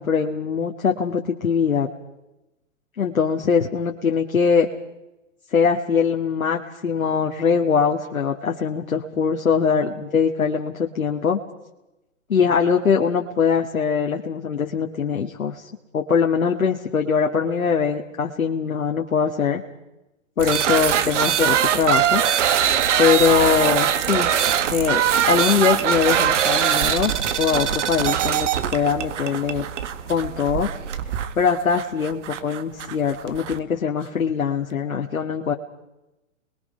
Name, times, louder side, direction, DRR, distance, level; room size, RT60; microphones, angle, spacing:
voice 1, 0.0-1.9 3.0-4.7 5.5-11.4 12.3-19.6 20.4-22.2 23.0-24.3 24.7-29.6 30.1-30.7 31.4-35.5, left 6 dB, 85° left, 2 dB, 2.1 m, -22 dB
sound 1, 20.4-33.6, right 9 dB, 60° right, 1.7 m, -22 dB
29.0 x 22.0 x 5.7 m, 0.97 s
hypercardioid pair, 130°, 40 cm